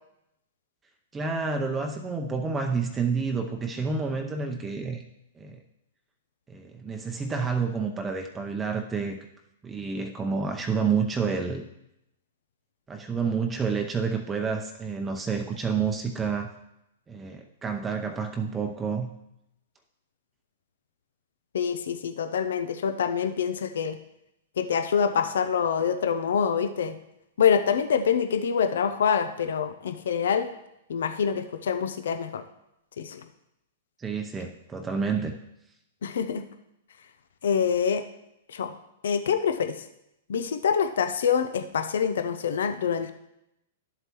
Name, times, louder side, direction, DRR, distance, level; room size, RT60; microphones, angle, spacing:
voice 1, 1.1-5.0 5.4-5.6 6.5-9.2 9.6-11.6 12.9-16.5 17.1-19.1 34.0-35.3, right 5 dB, 15° right, 3 dB, 0.7 m, -29 dB
voice 2, 21.5-24.0 24.6-26.9 27.4-30.5 30.9-32.4 33.0-33.2 36.0-36.5 37.4-38.0 38.5-38.7 39.0-39.8 40.3-43.1, left 7 dB, 75° left, 9 dB, 0.6 m, -25 dB
12.0 x 7.8 x 3.0 m, 0.85 s
hypercardioid pair, 120°, 0 cm